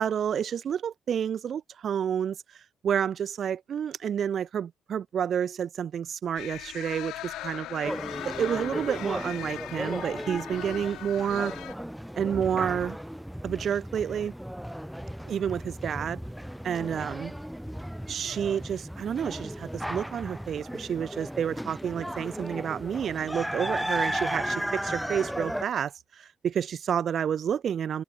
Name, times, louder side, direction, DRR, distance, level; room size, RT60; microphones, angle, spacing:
voice 1, 0.0-2.4 2.8-7.9 8.2-11.5 12.1-13.0 13.4-14.3 15.2-16.2 16.6-17.3 18.1-28.0, right 8 dB, 60° right, 3.8 m, -29 dB
sound 1, 6.4-11.7, left 15 dB, 90° left, 3.8 m, -40 dB
sound 2, 7.8-25.6, equal, ahead, 5.5 m, -35 dB
cardioid pair, 90°, 0 cm